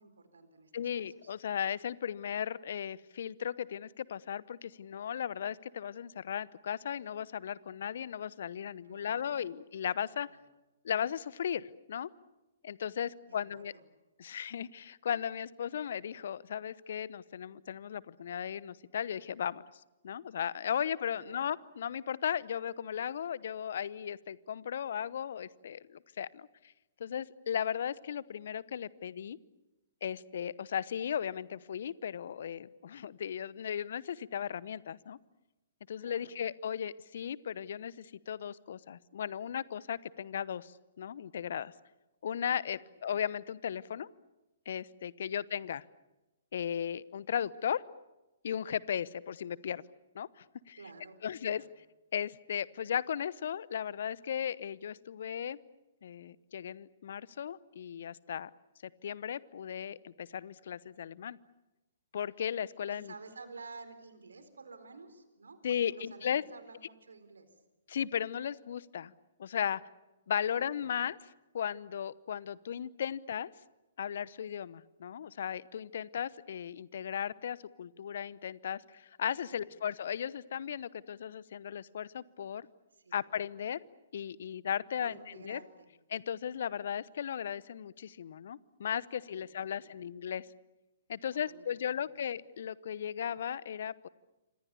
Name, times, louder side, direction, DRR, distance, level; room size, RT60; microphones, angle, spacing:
voice 1, 0.0-1.3 8.8-9.4 10.2-10.4 13.2-13.8 21.1-21.4 36.0-36.3 42.7-42.8 45.5-45.7 50.8-51.7 62.9-67.5 70.4-71.0 79.4-79.7 83.0-83.3 85.0-85.9 89.2-90.0 91.3-92.1, right 4 dB, 75° right, 10 dB, 4.2 m, -52 dB
voice 2, 0.7-10.3 10.8-12.1 12.6-13.7 14.2-19.6 20.0-26.5 27.0-29.4 30.0-35.2 35.9-41.7 42.2-44.1 44.7-45.8 46.5-47.8 48.4-49.8 50.1-50.8 51.2-51.6 52.1-55.6 56.0-58.5 59.0-61.4 62.1-63.1 65.6-66.4 67.9-69.1 69.4-69.8 70.3-71.3 71.5-73.5 74.0-82.7 83.1-83.8 84.1-85.2 85.4-85.6 86.1-90.5 91.1-94.1, left 8 dB, 60° left, 20 dB, 0.9 m, -36 dB
28.5 x 26.0 x 7.0 m, 1.1 s
figure-of-eight pair, 120°, 0 cm